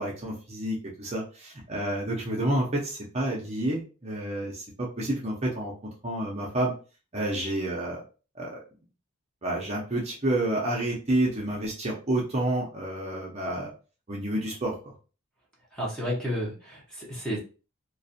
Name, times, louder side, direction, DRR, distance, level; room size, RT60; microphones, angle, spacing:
voice 1, 0.0-5.7 6.0-6.7 7.1-8.0 8.3-8.6 9.4-13.7 14.1-14.9, right 1 dB, 30° right, -3 dB, 0.6 m, -29 dB
voice 2, 15.7-17.4, equal, 5° left, -5 dB, 0.8 m, -31 dB
2.4 x 2.3 x 2.6 m, 0.35 s
head